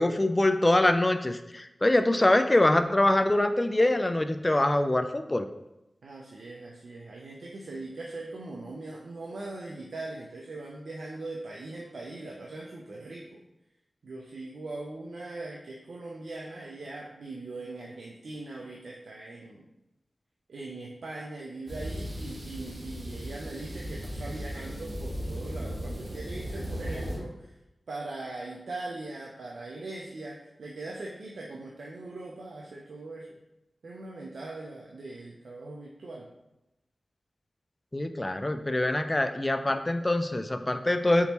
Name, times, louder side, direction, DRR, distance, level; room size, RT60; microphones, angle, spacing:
voice 1, 0.0-5.5 37.9-41.3, left 1 dB, 30° left, 8 dB, 0.3 m, -24 dB
voice 2, 6.0-13.4 14.0-19.7 20.5-27.5 27.9-33.3 33.8-36.3, right 2 dB, 85° right, -3 dB, 0.4 m, -40 dB
sound 1, 21.7-27.2, equal, 55° right, 1.4 m, -36 dB
4.0 x 3.5 x 2.9 m, 0.91 s
cardioid pair, 45°, 0 cm